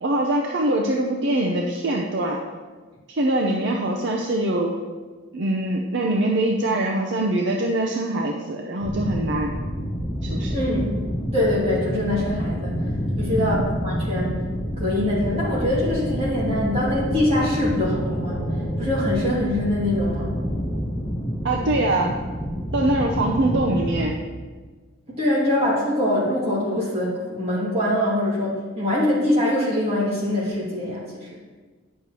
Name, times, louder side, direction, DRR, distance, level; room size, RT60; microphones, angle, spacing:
voice 1, 0.0-2.4 3.1-4.7 5.3-9.5 10.2-10.5 13.4-13.6 21.4-22.2 22.7-24.2, right 1 dB, 55° right, 0 dB, 0.6 m, -23 dB
sound 1, 8.8-24.0, equal, 20° left, 0.7 m, -28 dB
voice 2, 10.5-11.0 11.3-12.8 13.2-14.4 14.8-18.4 18.8-20.3 25.1-31.4, left 1 dB, 30° right, -7 dB, 2.4 m, -23 dB
sound 2, 15.2-20.9, equal, 45° left, 2.1 m, -39 dB
9.3 x 6.5 x 2.9 m, 1.4 s
head